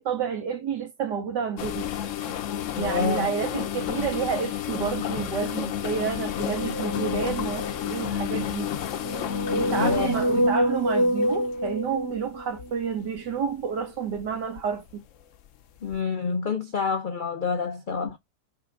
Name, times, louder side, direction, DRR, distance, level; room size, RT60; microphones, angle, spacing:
voice 1, 0.0-1.9 2.2-2.4 2.8-8.7 9.5-15.0, right 7 dB, 90° right, 2.2 m, -30 dB
sound 1, 1.6-11.7 12.4-12.7 13.2-13.4 14.2-14.6 14.9-15.0 15.9-16.0, left 10 dB, 60° left, 0.9 m, -31 dB
voice 2, 2.7-3.3 9.7-10.5 15.8-18.2, left 5 dB, 85° left, 0.4 m, -28 dB
sound 2, 6.3-7.9 8.8-12.7, equal, 25° right, 0.5 m, -27 dB
5.8 x 3.8 x 5.0 m
omnidirectional pair, 1.8 m